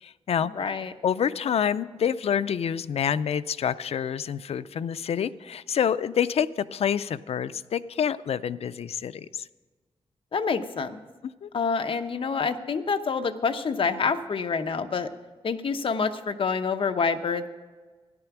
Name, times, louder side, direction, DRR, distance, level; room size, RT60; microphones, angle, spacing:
voice 1, 0.0-0.5 1.0-9.4 11.4-11.5, left 8 dB, 75° left, 15 dB, 0.4 m, -27 dB
voice 2, 0.5-0.9 10.3-11.0 11.5-15.1 15.4-17.5, left 5 dB, 60° left, 8 dB, 0.8 m, -27 dB
13.5 x 11.0 x 5.9 m, 1.4 s
wide cardioid pair, 115°, 10 cm